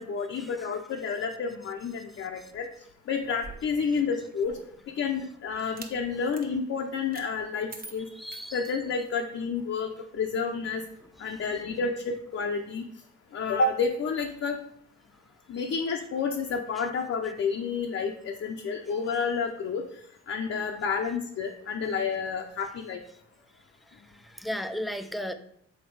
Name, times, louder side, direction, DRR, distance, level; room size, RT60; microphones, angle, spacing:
voice 1, 0.0-2.7 3.1-4.6 4.9-8.1 8.5-10.8 11.2-12.8 13.3-14.6 15.5-19.8 20.3-23.0, left 5 dB, 50° left, 2 dB, 0.7 m, -30 dB
sound 1, 3.2-4.8 5.6-6.0 6.3-6.5 7.1-7.3 7.7-9.2, right 4 dB, 30° right, 0.8 m, -46 dB
voice 2, 8.2-8.6 24.2-25.3, equal, ahead, 8 dB, 0.4 m, -34 dB
7.2 x 4.2 x 4.6 m, 0.70 s
cardioid pair, 145°, 29 cm